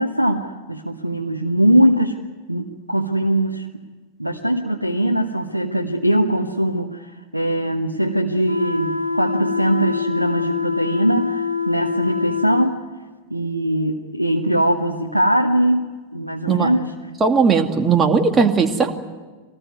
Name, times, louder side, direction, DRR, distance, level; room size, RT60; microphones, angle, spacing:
voice 1, 0.0-2.1 2.5-3.7 4.2-12.8 13.3-16.9, right 1 dB, 90° right, 2 dB, 1.3 m, -21 dB
sound 1, 8.4-12.7, left 5 dB, 85° left, 1.0 m, -24 dB
voice 2, 17.2-18.9, right 5 dB, 20° right, 4 dB, 2.3 m, -17 dB
25.0 x 19.0 x 9.5 m, 1.3 s
figure-of-eight pair, 90°, 0 cm